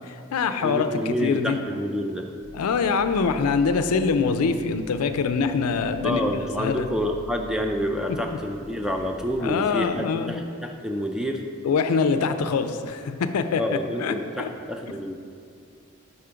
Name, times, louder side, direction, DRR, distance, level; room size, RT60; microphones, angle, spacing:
voice 1, 0.1-1.6 2.5-6.9 9.4-10.4 11.6-13.6 14.0-14.5, left 5 dB, 90° left, 9 dB, 0.4 m, -24 dB
voice 2, 0.6-2.3 6.0-11.4 13.6-15.1, equal, 5° right, 3 dB, 0.3 m, -28 dB
sound 1, 2.4-10.0, equal, 45° right, 1.2 m, -45 dB
5.0 x 4.3 x 5.6 m, 2.3 s
head